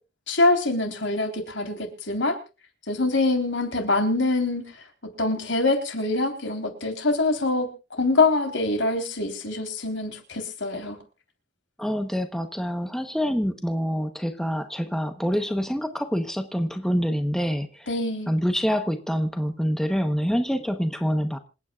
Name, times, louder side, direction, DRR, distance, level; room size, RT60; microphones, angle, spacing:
voice 1, 0.3-2.4 2.9-4.7 5.2-11.0 17.9-18.3, left 2 dB, 65° left, 6 dB, 3.7 m, -24 dB
voice 2, 11.8-17.9 18.3-21.4, equal, ahead, 7 dB, 0.9 m, -26 dB
27.5 x 9.3 x 2.4 m, 0.31 s
head